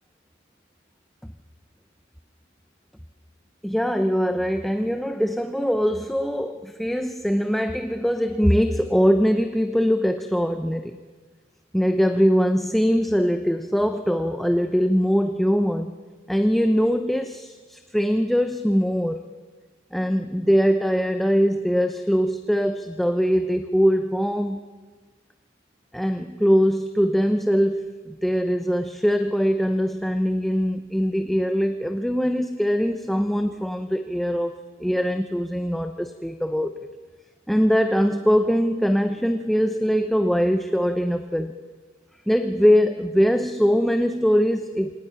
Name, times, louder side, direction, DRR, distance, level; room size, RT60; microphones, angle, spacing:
voice 1, 3.6-11.0 11.7-16.0 16.3-19.2 19.9-24.6 25.9-34.5 34.8-36.7 37.5-41.5 42.3-44.9, equal, ahead, 7 dB, 0.7 m, -22 dB
29.5 x 26.5 x 5.7 m, 1.4 s
head